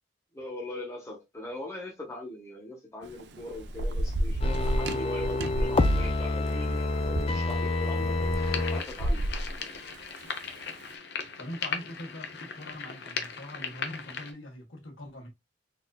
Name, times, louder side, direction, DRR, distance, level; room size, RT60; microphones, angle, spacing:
voice 1, 0.3-9.3, left 1 dB, 15° left, 1.0 m, -40 dB
Thunder / Rain, 3.0-10.7, right 1 dB, 60° right, 0.5 m, -32 dB
sound 1, 4.4-8.8 9.2-9.3, left 2 dB, 30° left, 0.3 m, -28 dB
sound 2, 8.3-14.3, left 6 dB, 55° left, 0.7 m, -38 dB
voice 2, 11.4-15.3, left 1 dB, 90° left, 1.4 m, -42 dB
4.0 x 2.6 x 2.3 m
head